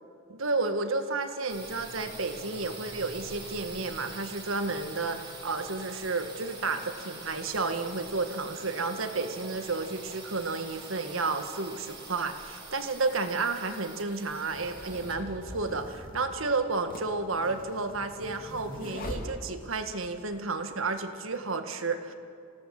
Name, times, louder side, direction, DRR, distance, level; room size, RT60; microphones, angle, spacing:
voice 1, 0.3-22.1, right 3 dB, 80° right, 7 dB, 1.6 m, -31 dB
sound 1, 1.5-17.1, right 3 dB, 25° right, 3.8 m, -45 dB
sound 2, 13.5-19.9, left 1 dB, 45° left, 3.0 m, -43 dB
28.0 x 17.5 x 7.7 m, 2.3 s
head